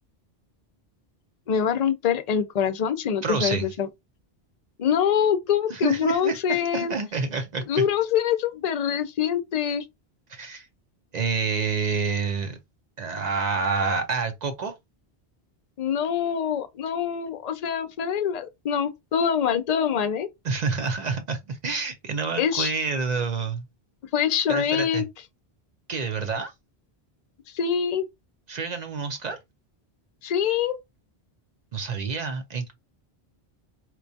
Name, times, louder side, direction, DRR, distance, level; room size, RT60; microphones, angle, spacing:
voice 1, 1.5-3.9 4.8-6.9 7.7-9.8 15.8-20.3 22.4-22.7 24.1-25.0 27.5-28.0 30.2-30.8, left 8 dB, 50° left, 0.5 m, -24 dB
voice 2, 3.2-3.7 5.7-7.9 10.3-10.7 11.1-12.6 13.0-14.7 20.4-23.6 24.5-25.1 25.9-26.5 28.5-29.4 31.7-32.7, right 5 dB, 50° right, 0.6 m, -28 dB
4.4 x 2.2 x 2.6 m
omnidirectional pair, 1.1 m